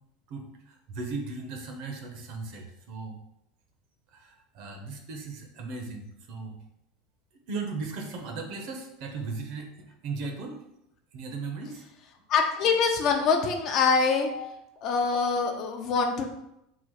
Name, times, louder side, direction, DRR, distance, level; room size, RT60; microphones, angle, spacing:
voice 1, 0.3-3.2 4.1-6.6 7.5-10.6 11.1-11.8 14.2-14.4, right 3 dB, 55° right, 3 dB, 0.8 m, -37 dB
voice 2, 12.3-14.3 14.8-16.3, left 5 dB, 40° left, 4 dB, 0.6 m, -24 dB
3.9 x 2.4 x 4.7 m, 0.83 s
supercardioid pair, 150°, 0 cm